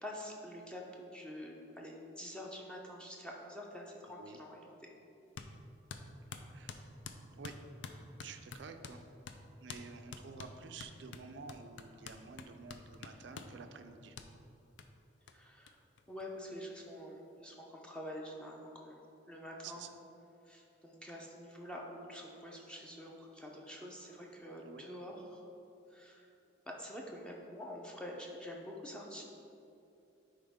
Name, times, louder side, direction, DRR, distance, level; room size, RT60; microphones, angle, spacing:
voice 1, 0.0-0.8 1.1-4.9 15.3-15.8 16.1-19.0 19.3-19.9 20.5-25.4 25.9-26.3 26.7-29.2, equal, 5° left, -1 dB, 0.6 m, -47 dB
voice 2, 4.1-4.4 6.5-6.8 7.3-7.5 8.2-9.0 9.6-14.2 19.6-19.9 24.6-24.9, right 5 dB, 65° right, 7 dB, 0.4 m, -50 dB
sound 1, 5.4-5.5 5.9-9.0 9.3-9.4 9.7-9.9 10.1-13.6 14.2-14.3 14.8-14.9 15.3-15.4 15.7-15.8 16.0-16.7, left 5 dB, 70° left, 0.4 m, -48 dB
10.0 x 4.0 x 3.6 m, 2.9 s
head